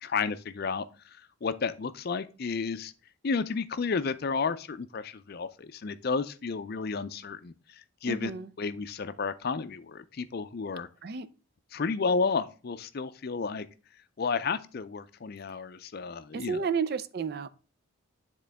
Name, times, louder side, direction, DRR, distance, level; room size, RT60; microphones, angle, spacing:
voice 1, 0.0-0.8 1.4-2.9 3.2-8.3 8.6-10.9 11.7-13.6 14.2-16.7, left 5 dB, 45° left, 0.4 m, -32 dB
voice 2, 8.0-8.5 11.0-11.3 16.3-17.5, right 5 dB, 50° right, 0.4 m, -31 dB
9.9 x 3.7 x 3.4 m
head